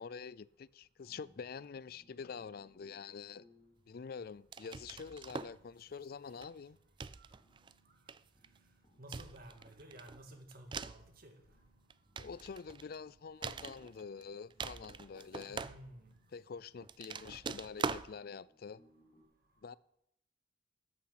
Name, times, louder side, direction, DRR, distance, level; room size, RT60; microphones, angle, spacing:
voice 1, 0.0-3.5 3.9-6.8 12.2-15.7 16.3-18.8 19.6-19.8, left 5 dB, 50° left, 0.4 m, -46 dB
bassguitar tunning, 1.0-19.2, equal, 30° left, 2.6 m, -71 dB
sound 1, 4.5-5.6 6.4-6.6 7.0-7.7 8.1-8.6 9.1-11.1 11.7-13.0 13.4-14.2 14.5-16.2 16.8-18.1, right 5 dB, 25° right, 0.3 m, -43 dB
voice 2, 9.0-11.4 15.5-16.1, right 1 dB, 50° right, 1.9 m, -53 dB
13.0 x 8.7 x 5.8 m
head